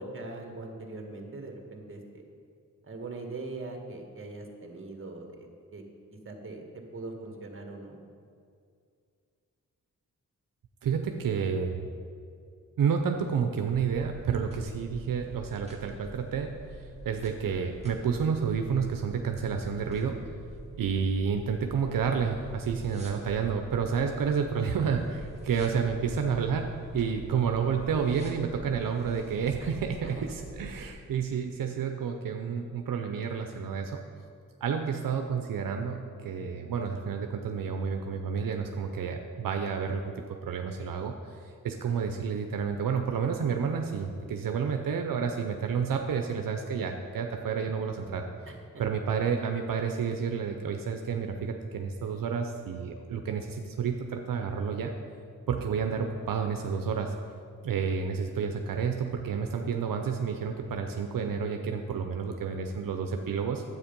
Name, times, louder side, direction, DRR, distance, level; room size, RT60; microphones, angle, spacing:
voice 1, 0.0-2.2 2.8-5.8 6.1-8.0 29.6-29.7 30.0-30.2 48.5-48.6, right 2 dB, 40° right, 3 dB, 1.7 m, -41 dB
voice 2, 10.8-11.7 12.8-20.2 20.8-26.7 26.9-34.0 34.6-40.1 40.4-48.2 48.8-54.9 55.5-57.1 57.6-63.6, right 6 dB, 80° right, 4 dB, 0.7 m, -30 dB
sound 1, 13.7-30.9, right 2 dB, 20° right, 1.9 m, -46 dB
9.8 x 8.0 x 5.3 m, 2.3 s
cardioid pair, 70°, 33 cm